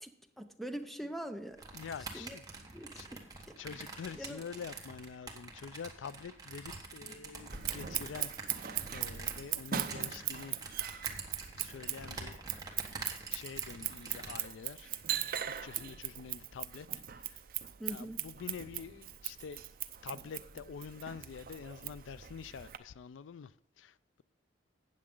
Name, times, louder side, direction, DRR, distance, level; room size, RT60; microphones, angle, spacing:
voice 1, 0.0-1.6 2.1-2.4 2.7-3.2 4.1-4.4 17.8-18.2, right 1 dB, ahead, 0.6 m, -43 dB
sound 1, 1.6-14.4, right 3 dB, 20° right, 1.3 m, -46 dB
voice 2, 1.7-2.5 3.0-3.1 3.6-10.8 11.5-12.4 13.3-14.9 15.5-17.4 17.9-19.6 20.0-24.2, left 6 dB, 85° left, 0.4 m, -46 dB
Scissors, 7.5-22.8, right 11 dB, 50° right, 0.5 m, -40 dB
12.5 x 8.6 x 3.8 m
head